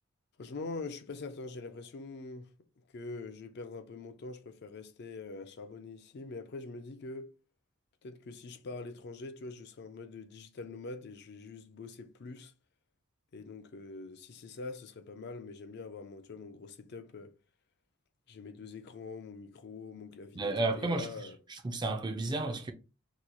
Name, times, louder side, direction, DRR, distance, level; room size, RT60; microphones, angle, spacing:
voice 1, 0.4-2.5 2.8-7.4 8.0-12.5 13.3-17.4 18.3-21.4, left 3 dB, 50° left, 0.4 m, -44 dB
voice 2, 20.4-21.1 21.6-22.7, right 2 dB, 20° right, 0.4 m, -32 dB
2.9 x 2.3 x 3.7 m
head